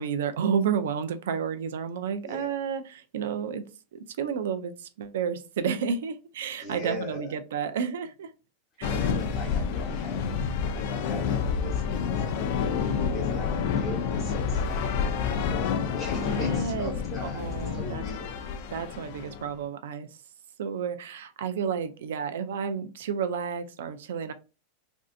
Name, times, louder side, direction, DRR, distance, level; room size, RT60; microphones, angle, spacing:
voice 1, 0.0-3.6 3.9-8.3 8.8-9.1 16.3-16.9 17.2-18.0 18.7-20.1 20.6-24.3, right 7 dB, 80° right, 0.4 m, -31 dB
voice 2, 6.6-7.4 8.9-18.4, left 1 dB, 15° left, 1.2 m, -41 dB
sound 1, 8.8-19.5, left 6 dB, 45° left, 0.4 m, -29 dB
3.2 x 2.6 x 2.6 m
supercardioid pair, 170°, 0 cm